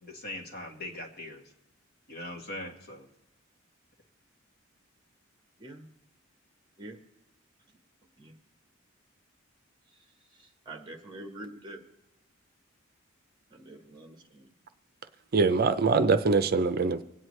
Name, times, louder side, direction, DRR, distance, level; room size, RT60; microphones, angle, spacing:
voice 1, 0.0-1.4 2.1-3.1, left 1 dB, 50° left, 1 dB, 1.8 m, -40 dB
voice 2, 10.4-11.8 13.5-14.5, right 1 dB, 20° right, 4 dB, 1.3 m, -45 dB
voice 3, 15.3-17.0, right 4 dB, 50° right, 11 dB, 0.5 m, -23 dB
25.0 x 9.1 x 3.2 m, 1.0 s
head